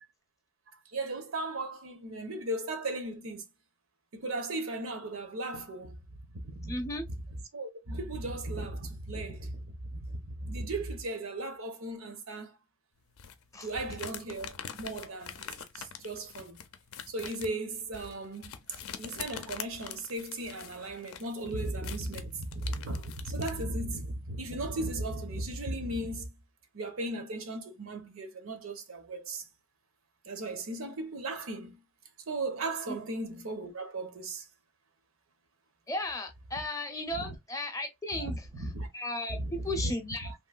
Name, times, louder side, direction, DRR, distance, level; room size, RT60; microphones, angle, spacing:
voice 1, 0.9-3.5 4.1-6.0 6.4-6.8 7.5-12.5 13.5-15.5 15.7-16.6 17.1-18.6 19.0-26.3 26.7-29.4 30.3-31.8 32.3-34.4 37.2-37.3 38.1-38.9 39.3-39.9 40.2-40.3, right 2 dB, 80° right, 0.8 m, -36 dB
voice 2, 6.6-7.1 13.5-13.7 32.9-33.0 35.9-38.5 38.9-40.3, left 1 dB, 15° left, 0.5 m, -35 dB
sound 1, 13.2-23.6, left 8 dB, 85° left, 0.5 m, -44 dB
3.0 x 2.7 x 2.3 m
head